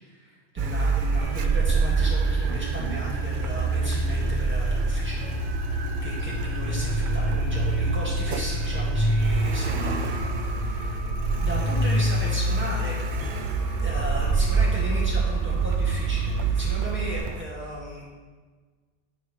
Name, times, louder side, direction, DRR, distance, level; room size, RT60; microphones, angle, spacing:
voice 1, 0.0-5.6 6.0-10.2 10.6-11.1 11.4-13.0 13.8-18.1, equal, 10° right, -6 dB, 2.0 m, -36 dB
Car, 0.6-17.4, right 4 dB, 55° right, 0.6 m, -28 dB
sound 1, 1.2-17.2, right 1 dB, 70° left, 2.6 m, -28 dB
11.0 x 4.6 x 3.2 m, 1.4 s
omnidirectional pair, 1.1 m